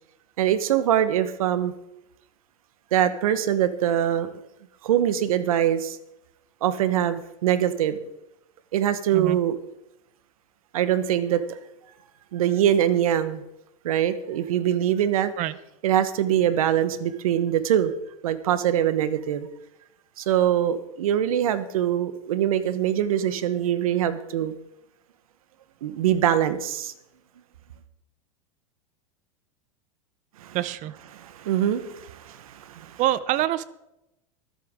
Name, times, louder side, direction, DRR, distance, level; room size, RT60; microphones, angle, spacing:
voice 1, 0.4-1.7 2.9-4.3 4.8-6.0 6.6-8.0 8.7-9.6 10.7-11.6 12.3-13.4 13.8-15.3 15.8-17.9 18.2-19.5 20.2-24.5 25.8-26.9 30.4-30.6 31.1-33.0, right 10 dB, 75° right, 12 dB, 1.2 m, -23 dB
voice 2, 30.5-30.9 33.0-33.6, right 14 dB, 45° right, 17 dB, 0.9 m, -25 dB
24.5 x 8.5 x 3.7 m, 0.88 s
hypercardioid pair, 100°, 18 cm